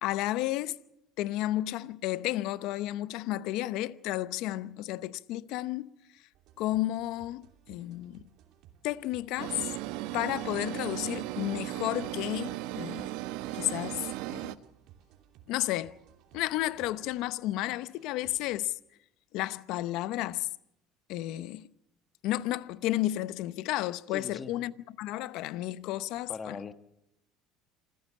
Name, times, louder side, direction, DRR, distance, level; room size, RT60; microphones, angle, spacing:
voice 1, 0.0-0.8 1.2-6.2 6.6-8.2 8.8-9.7 10.1-13.1 13.5-14.6 15.5-16.0 16.3-18.8 19.3-20.5 21.1-21.7 22.2-26.6, left 15 dB, 65° left, 0.8 m, -32 dB
sound 1, 6.3-18.6, right 10 dB, 60° right, 3.0 m, -59 dB
sound 2, 9.4-14.5, right 16 dB, 75° right, 0.9 m, -36 dB
voice 2, 24.1-24.5 26.3-26.7, left 5 dB, 25° left, 1.4 m, -39 dB
27.0 x 15.0 x 8.6 m
cardioid pair, 135°, 0 cm